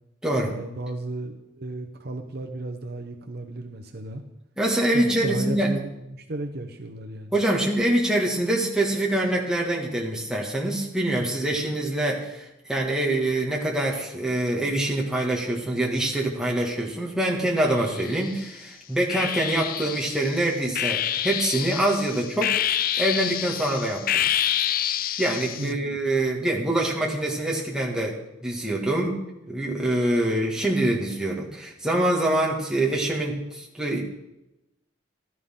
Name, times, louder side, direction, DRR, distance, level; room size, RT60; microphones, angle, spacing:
voice 1, 0.5-4.2 4.9-7.4 25.6-26.0, right 2 dB, 50° right, 4 dB, 0.9 m, -34 dB
voice 2, 4.6-5.8 7.3-22.5 23.0-24.2 25.2-29.2 29.5-34.0, right 1 dB, 5° right, -3 dB, 2.1 m, -25 dB
sound 1, 17.7-18.5 19.1-25.7, left 10 dB, 45° left, 0.4 m, -28 dB
15.5 x 12.5 x 3.8 m, 0.92 s
head